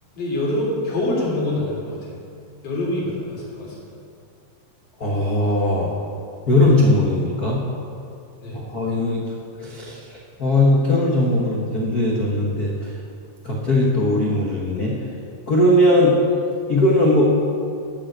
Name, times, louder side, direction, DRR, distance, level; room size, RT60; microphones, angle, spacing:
voice 1, 0.2-2.2 2.6-3.8 8.4-8.6, left 1 dB, 45° left, -5 dB, 4.5 m, -25 dB
voice 2, 5.0-5.9 6.5-7.6 8.5-9.2 9.6-10.0 10.4-12.7 13.4-14.9 15.5-16.1 16.7-17.2, left 1 dB, 75° left, -3 dB, 0.8 m, -19 dB
13.5 x 7.3 x 8.0 m, 2.4 s
omnidirectional pair, 4.1 m